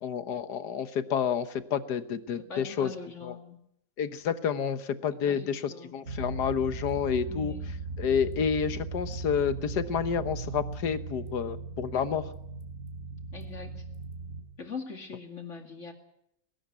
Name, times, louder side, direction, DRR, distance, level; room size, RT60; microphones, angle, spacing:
voice 1, 0.0-2.9 3.2-3.3 4.0-7.5 8.0-12.3, left 7 dB, 65° left, 12 dB, 1.6 m, -29 dB
voice 2, 2.4-3.6 5.1-5.9 7.0-7.7 13.3-13.8 14.6-15.9, left 5 dB, 40° left, 6 dB, 2.6 m, -43 dB
sound 1, 6.0-14.4, right 3 dB, 45° right, 3.6 m, -38 dB
20.0 x 17.5 x 9.4 m, 0.77 s
omnidirectional pair, 2.0 m